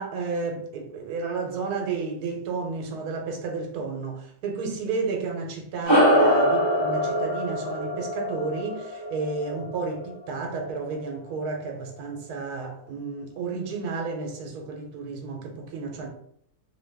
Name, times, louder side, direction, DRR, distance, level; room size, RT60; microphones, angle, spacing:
voice 1, 0.0-16.1, right 4 dB, 80° right, 1.2 m, -32 dB
sound 1, 5.9-10.6, equal, 20° left, 0.9 m, -23 dB
2.8 x 2.3 x 3.3 m
omnidirectional pair, 1.7 m